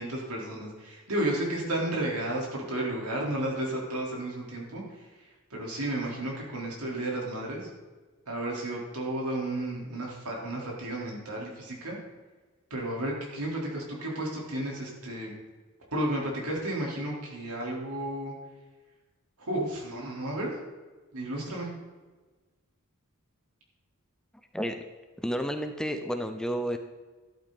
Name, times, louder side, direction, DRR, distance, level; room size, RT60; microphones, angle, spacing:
voice 1, 0.0-7.7 8.3-12.0 12.7-15.3 15.9-18.3 19.4-20.5 21.1-21.7, right 1 dB, 85° right, -3 dB, 4.3 m, -33 dB
voice 2, 25.2-26.8, equal, 5° left, 6 dB, 0.7 m, -31 dB
13.5 x 12.0 x 4.3 m, 1.3 s
head